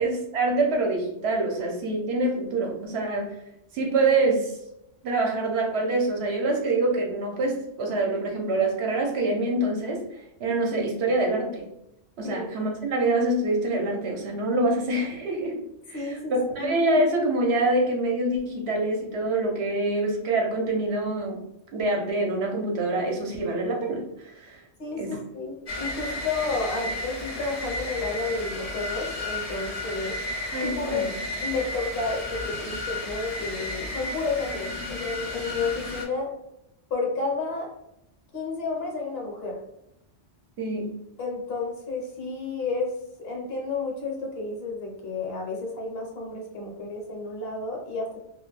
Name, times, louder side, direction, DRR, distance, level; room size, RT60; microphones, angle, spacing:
voice 1, 0.0-3.3 3.7-4.5 5.0-11.6 12.2-15.6 15.9-21.4 21.7-24.6 25.0-25.2 30.5-31.1 40.6-41.0, right 2 dB, 65° right, 0 dB, 0.8 m, -25 dB
voice 2, 15.9-16.7 24.8-30.2 30.8-31.0 31.4-36.3 36.9-37.7 38.3-39.6 41.2-48.2, left 3 dB, 60° left, -1 dB, 0.9 m, -31 dB
sound 1, 25.7-36.0, left 2 dB, 40° left, 0.6 m, -33 dB
2.4 x 2.1 x 3.0 m, 0.80 s
omnidirectional pair, 1.2 m